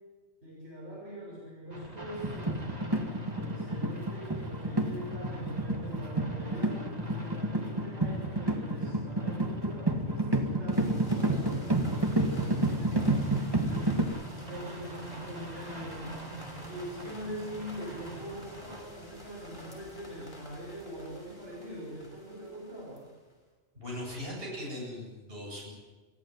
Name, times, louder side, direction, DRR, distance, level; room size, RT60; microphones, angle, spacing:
voice 1, 0.4-2.6 3.3-13.9 14.4-16.3 16.6-23.0, equal, 70° right, -4 dB, 6.6 m, -43 dB
sound 1, 1.7-18.8, right 1 dB, 35° right, 2.5 m, -45 dB
sound 2, 2.2-14.0, right 1 dB, 20° right, 2.0 m, -30 dB
sound 3, 10.7-23.3, equal, 25° left, 5.6 m, -51 dB
voice 2, 23.7-25.7, left 1 dB, 50° right, -3 dB, 8.3 m, -39 dB
24.0 x 15.0 x 9.8 m, 1.3 s
omnidirectional pair, 1.2 m